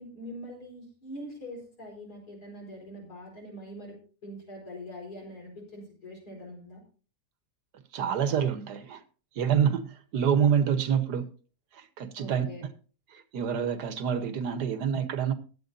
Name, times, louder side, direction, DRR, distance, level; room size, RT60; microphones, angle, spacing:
voice 1, 0.0-4.0 4.2-6.8 12.2-12.7, equal, 70° left, 5.1 m, -43 dB
voice 2, 7.9-9.0 9.4-11.3 11.8-12.5 13.3-15.3, right 8 dB, 80° right, 1.6 m, -27 dB
21.5 x 8.1 x 2.6 m
omnidirectional pair, 1.7 m